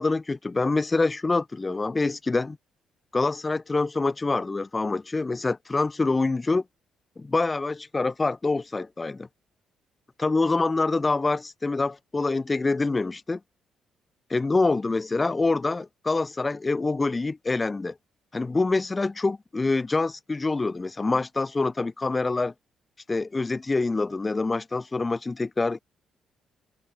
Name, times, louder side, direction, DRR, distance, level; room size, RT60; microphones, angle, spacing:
voice 1, 0.0-2.6 3.1-6.6 7.2-9.3 10.2-13.4 14.3-17.9 18.3-22.5 23.1-25.8, left 3 dB, 25° left, 0.4 m, -25 dB
cardioid pair, 90°, 0 cm